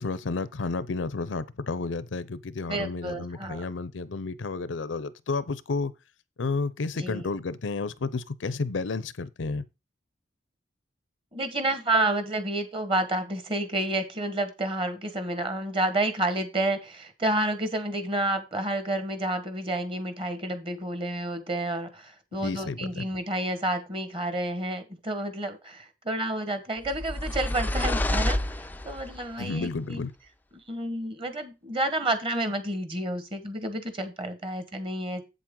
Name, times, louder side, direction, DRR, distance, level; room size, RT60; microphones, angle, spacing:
voice 1, 0.0-5.9 6.4-9.7 22.3-23.1 29.4-30.1, left 3 dB, 90° left, 0.6 m, -31 dB
voice 2, 2.7-3.7 7.0-7.2 11.3-28.4 28.8-30.0 30.7-35.2, right 1 dB, 30° right, 1.4 m, -30 dB
sound 1, 26.8-29.3, left 1 dB, 10° left, 0.3 m, -28 dB
8.0 x 7.4 x 3.8 m
head